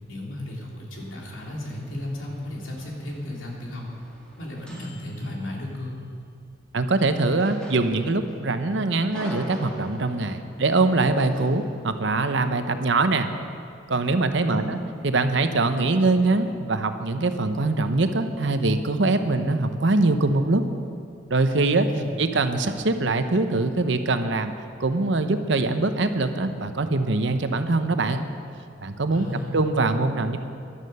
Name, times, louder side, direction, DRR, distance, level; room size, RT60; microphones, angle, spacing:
voice 1, 0.1-3.9 4.4-6.0 14.3-14.7 21.7-22.1 29.1-29.6, left 1 dB, 90° left, -2 dB, 3.0 m, -34 dB
sound 1, 0.9-5.9 7.1-8.4 8.7-10.4 11.2-11.7, equal, 5° left, 2.0 m, -45 dB
voice 2, 6.7-13.3 13.9-20.6 21.3-21.9 22.2-24.5 24.8-28.2 28.8-30.4, right 3 dB, 65° right, 8 dB, 0.8 m, -23 dB
16.0 x 11.5 x 5.5 m, 2.4 s
head